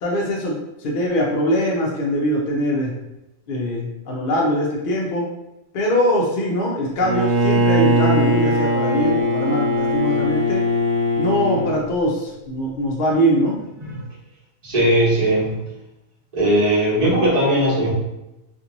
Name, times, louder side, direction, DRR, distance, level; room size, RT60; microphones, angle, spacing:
voice 1, 0.0-2.9 3.5-5.3 5.7-10.6 11.2-13.6, equal, 55° left, -3 dB, 0.6 m, -22 dB
Bowed string instrument, 7.0-11.8, equal, 55° right, 1.2 m, -20 dB
voice 2, 14.6-15.5 16.3-17.9, right 1 dB, 30° right, -6 dB, 1.0 m, -18 dB
2.9 x 2.5 x 2.5 m, 0.93 s
omnidirectional pair, 1.3 m